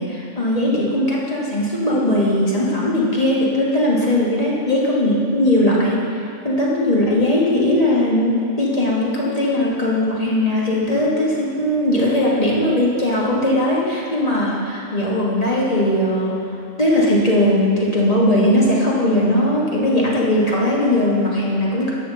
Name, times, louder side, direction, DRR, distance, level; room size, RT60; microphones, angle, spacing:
voice 1, 0.0-16.4 16.8-21.9, left 1 dB, 30° left, -5 dB, 1.4 m, -19 dB
11.0 x 3.7 x 7.2 m, 2.7 s
omnidirectional pair, 1.4 m